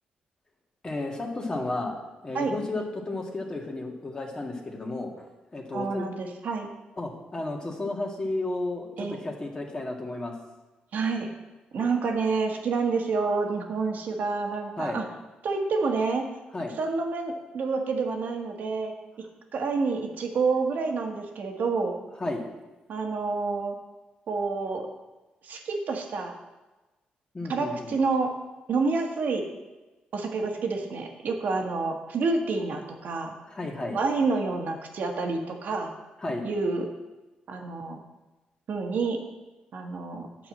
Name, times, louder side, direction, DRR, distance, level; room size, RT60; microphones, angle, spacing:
voice 1, 0.8-1.9 2.2-5.3 5.5-6.1 7.0-10.3 14.8-15.0 16.5-16.8 22.2-22.4 27.3-27.9 33.5-34.0 36.2-36.4, left 2 dB, 25° left, 1 dB, 1.9 m, -32 dB
voice 2, 5.7-6.7 9.0-9.2 10.9-11.3 11.7-15.0 15.4-16.3 16.8-18.9 19.2-19.3 19.5-21.9 22.9-23.8 24.3-24.9 25.4-26.3 27.5-28.3 28.7-29.5 30.1-33.3 33.9-35.9 36.4-36.9 37.5-38.0 38.7-39.2 39.7-40.3, right 4 dB, 65° right, 3 dB, 1.5 m, -28 dB
8.7 x 4.7 x 7.5 m, 1.1 s
cardioid pair, 75°, 3 cm